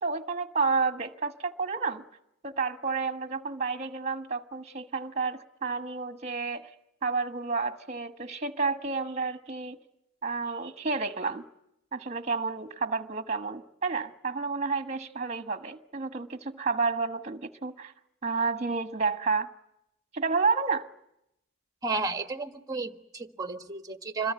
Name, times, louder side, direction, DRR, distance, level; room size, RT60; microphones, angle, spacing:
voice 1, 0.0-2.0 2.4-6.7 7.0-9.8 10.2-11.4 11.9-17.9 18.2-19.5 20.1-20.9, right 4 dB, 35° right, 1.4 m, -30 dB
voice 2, 21.8-24.3, right 3 dB, 20° right, 1.5 m, -32 dB
26.5 x 22.0 x 9.4 m
head